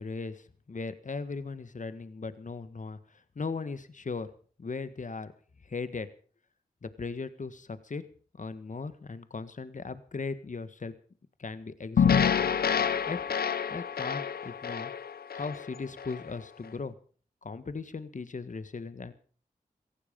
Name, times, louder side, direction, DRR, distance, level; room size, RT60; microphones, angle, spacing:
voice 1, 0.0-3.0 3.3-4.3 4.6-5.3 5.6-6.1 6.8-8.0 8.4-10.9 11.4-12.5 13.0-13.2 13.7-14.9 15.3-16.9 17.4-19.1, left 4 dB, 55° left, 13 dB, 1.6 m, -38 dB
sound 1, 12.0-16.3, left 7 dB, 80° left, 0.8 m, -27 dB
17.5 x 15.0 x 5.3 m, 0.42 s
cardioid pair, 40°, 16 cm